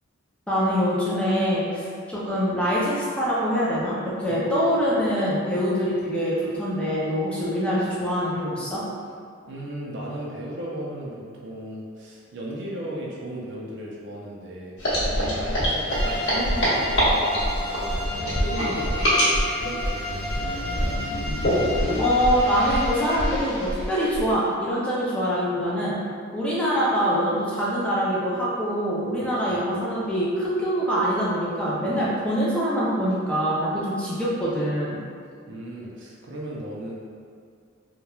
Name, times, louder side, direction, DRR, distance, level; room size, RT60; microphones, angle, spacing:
voice 1, 0.5-8.8 22.0-26.0 26.3-35.0, equal, 5° left, -8 dB, 0.4 m, -24 dB
voice 2, 9.5-14.7 15.0-20.9 29.4-29.6 31.9-32.1 35.5-36.9, right 1 dB, 60° right, -4 dB, 0.5 m, -36 dB
sound 1, 14.8-24.3, equal, 60° left, 0.9 m, -25 dB
sound 2, 15.5-17.0 17.4-17.5 17.7-19.3 19.9-23.0, left 2 dB, 85° left, 0.3 m, -37 dB
Bowed string instrument, 15.9-23.4, left 1 dB, 30° left, 0.8 m, -33 dB
2.9 x 2.2 x 2.3 m, 2.2 s
head